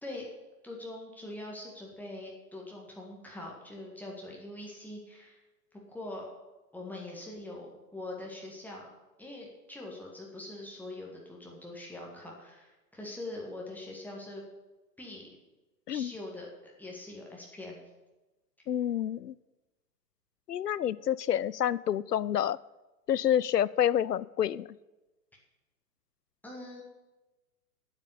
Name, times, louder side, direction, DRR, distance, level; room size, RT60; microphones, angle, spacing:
voice 1, 0.6-5.4 5.9-6.3 6.7-8.9 9.2-14.4 15.0-15.3 15.9-17.8 26.4-26.8, left 2 dB, 5° left, -2 dB, 1.8 m, -43 dB
voice 2, 18.7-19.3 20.5-22.6 23.1-24.7, left 10 dB, 80° left, 20 dB, 0.6 m, -28 dB
9.0 x 8.7 x 8.5 m, 1.1 s
figure-of-eight pair, 110°, 47 cm